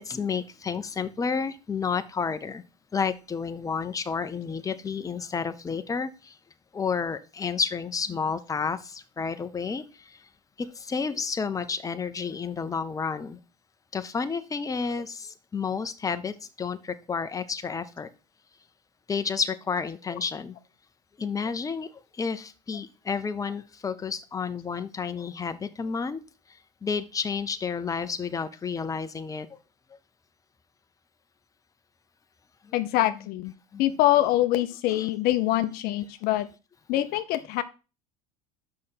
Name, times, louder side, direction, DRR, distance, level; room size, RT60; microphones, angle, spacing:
voice 1, 0.0-2.6 2.9-6.3 6.7-9.8 10.6-13.4 13.9-18.1 19.1-20.5 21.2-21.9 22.2-26.2 26.8-29.5 33.7-33.8 34.9-35.1 35.8-35.9, left 5 dB, 20° left, 10 dB, 0.8 m, -31 dB
voice 2, 32.7-33.5 33.8-36.5 36.9-37.6, left 14 dB, 60° left, 11 dB, 0.6 m, -24 dB
6.2 x 5.8 x 5.8 m, 0.32 s
hypercardioid pair, 80°, 18 cm